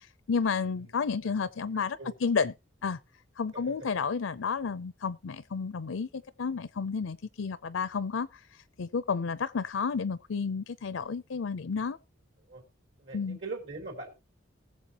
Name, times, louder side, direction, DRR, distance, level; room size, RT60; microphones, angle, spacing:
voice 1, 0.3-2.5 2.8-3.0 3.4-8.3 8.8-12.0 13.1-13.4, left 5 dB, 80° left, 0.5 m, -31 dB
voice 2, 1.7-2.1 3.5-3.7 12.5-12.6 13.0-14.1, right 3 dB, 65° right, 3.8 m, -41 dB
19.5 x 7.3 x 2.9 m
head